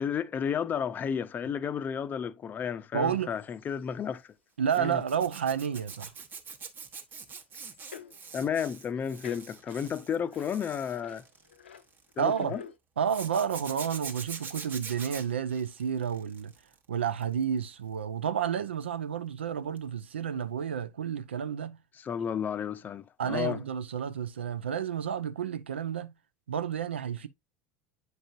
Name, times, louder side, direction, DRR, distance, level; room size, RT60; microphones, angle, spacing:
voice 1, 0.0-4.3 4.8-5.0 8.3-11.2 12.2-12.6 22.0-23.6, left 7 dB, 30° left, 0.5 m, -32 dB
voice 2, 2.9-3.3 4.6-6.1 12.2-12.6 13.0-16.5 16.9-21.8 23.2-26.1 26.5-27.3, right 8 dB, 75° right, 0.4 m, -30 dB
sound 1, 3.3-4.1 4.8-5.1 5.7-5.8 6.1-6.2 6.5-6.6 7.5-8.3 9.0-12.8, left 7 dB, 80° left, 0.6 m, -50 dB
Zipper (clothing), 4.7-12.1 13.1-16.7 17.1-17.4 19.8-19.9 20.2-20.3, right 5 dB, 30° right, 1.0 m, -44 dB
7.9 x 5.1 x 2.5 m
figure-of-eight pair, 70°, 6 cm